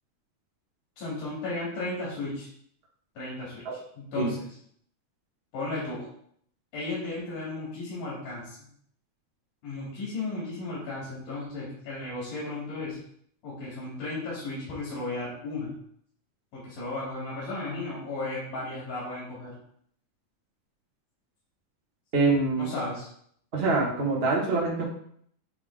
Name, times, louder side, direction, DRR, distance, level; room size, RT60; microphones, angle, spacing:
voice 1, 1.0-2.5 3.2-4.5 5.5-6.1 6.7-8.7 9.6-13.0 13.4-15.7 16.5-19.5 22.6-23.1, left 2 dB, 80° left, -7 dB, 4.0 m, -35 dB
voice 2, 22.1-22.7 23.5-24.9, right 3 dB, 35° right, -3 dB, 1.0 m, -25 dB
9.5 x 3.4 x 3.6 m, 0.65 s
omnidirectional pair, 3.6 m